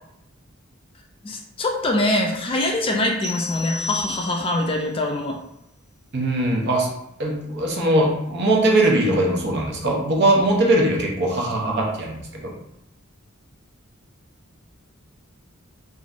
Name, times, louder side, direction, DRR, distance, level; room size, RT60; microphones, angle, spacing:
voice 1, 1.2-5.4, left 1 dB, 25° left, 1 dB, 0.3 m, -23 dB
sound 1, 3.2-4.7, left 3 dB, 15° right, 1.0 m, -32 dB
voice 2, 6.1-6.9 7.2-12.6, right 1 dB, 55° right, -1 dB, 0.7 m, -20 dB
3.1 x 2.5 x 2.5 m, 0.81 s
head